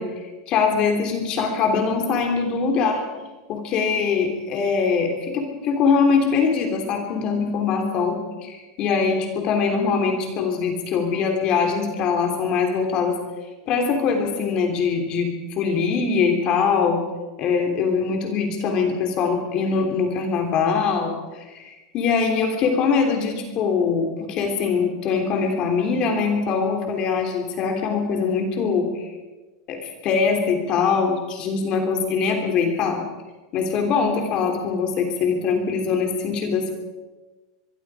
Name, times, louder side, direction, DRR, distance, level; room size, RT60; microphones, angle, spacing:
voice 1, 0.0-3.0 3.5-13.2 13.7-17.0 17.4-29.1 29.7-33.0 33.5-36.7, left 5 dB, 35° left, 3 dB, 3.4 m, -22 dB
24.0 x 23.5 x 5.0 m, 1.2 s
supercardioid pair, 155°, 2 cm